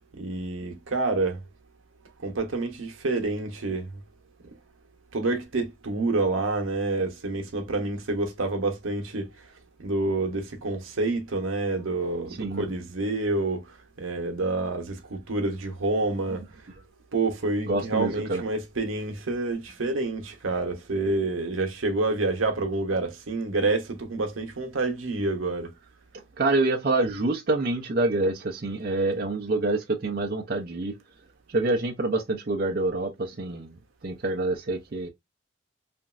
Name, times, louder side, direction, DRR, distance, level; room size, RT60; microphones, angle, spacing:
voice 1, 0.1-1.4 2.2-4.0 5.1-9.5 9.8-16.5 17.1-25.7, right 2 dB, 90° right, 0.8 m, -28 dB
voice 2, 17.7-18.4 26.4-31.0 31.5-33.8 34.0-35.1, right 2 dB, 45° right, 0.5 m, -26 dB
3.0 x 2.5 x 2.3 m
head